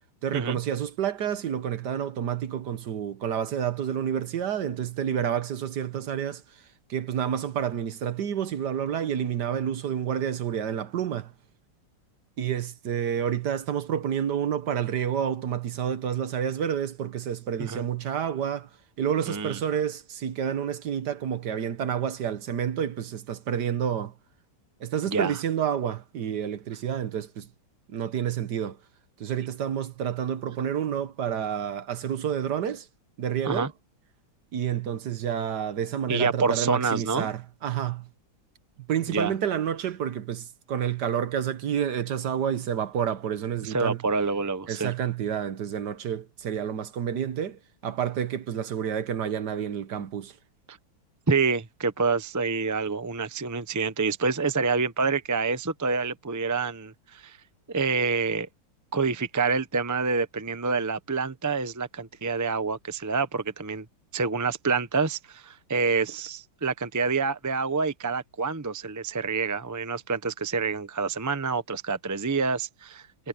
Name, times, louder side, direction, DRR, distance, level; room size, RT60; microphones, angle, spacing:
voice 1, 0.2-6.4 6.9-11.3 12.4-18.7 19.0-24.1 24.8-27.5 27.9-28.8 29.2-32.9 33.2-33.7 34.5-38.1 38.9-44.0 44.7-50.3, right 9 dB, 60° right, 1.6 m, -29 dB
voice 2, 19.3-19.6 25.1-25.3 33.4-33.7 36.1-37.3 39.1-39.3 43.6-44.9 50.7-50.8 51.3-57.4 57.7-58.5 58.9-63.8 64.1-73.1, right 4 dB, 20° right, 0.4 m, -27 dB
omnidirectional pair, 2.2 m